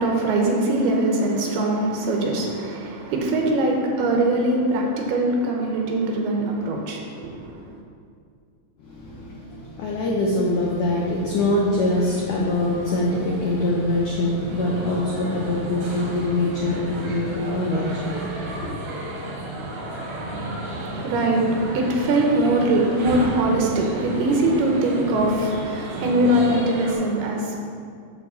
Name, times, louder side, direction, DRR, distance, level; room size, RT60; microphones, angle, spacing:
voice 1, 0.0-7.5 20.7-27.6, right 1 dB, 75° right, 0 dB, 2.8 m, -22 dB
voice 2, 8.8-18.7, left 2 dB, 85° left, -3 dB, 1.7 m, -24 dB
sound 1, 11.1-26.9, right 1 dB, 60° right, 2.3 m, -33 dB
8.5 x 4.5 x 6.8 m, 2.2 s
omnidirectional pair, 4.9 m